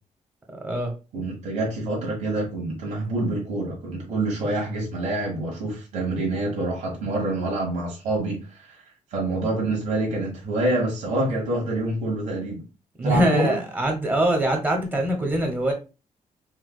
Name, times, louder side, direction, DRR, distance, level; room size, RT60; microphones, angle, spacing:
voice 1, 0.5-0.9 13.0-15.7, right 1 dB, 15° right, 0.8 m, -23 dB
voice 2, 1.1-8.8 9.1-12.6 13.0-13.6, right 2 dB, 70° right, 1.4 m, -26 dB
4.5 x 2.2 x 2.3 m
wide cardioid pair, 170°, 13 cm